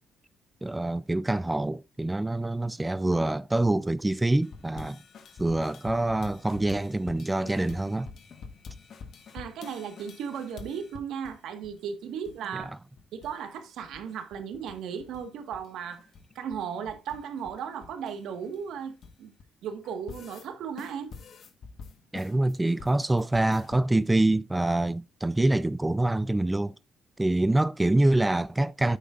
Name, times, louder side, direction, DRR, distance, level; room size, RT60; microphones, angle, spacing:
voice 1, 0.6-5.0 5.4-8.1 12.5-12.6 22.1-26.7 27.2-29.0, right 2 dB, 15° right, 0.4 m, -25 dB
sound 1, 4.4-11.4 11.6-11.8 12.0-12.7 13.0-13.3 13.6-15.2 15.5-19.4 19.8-20.5 20.8-23.8, left 5 dB, 60° left, 1.4 m, -47 dB
voice 2, 9.3-12.7 13.1-16.1 16.3-19.3 19.6-21.1, right 7 dB, 80° right, 1.6 m, -36 dB
9.8 x 8.2 x 2.5 m
cardioid pair, 90°, 0 cm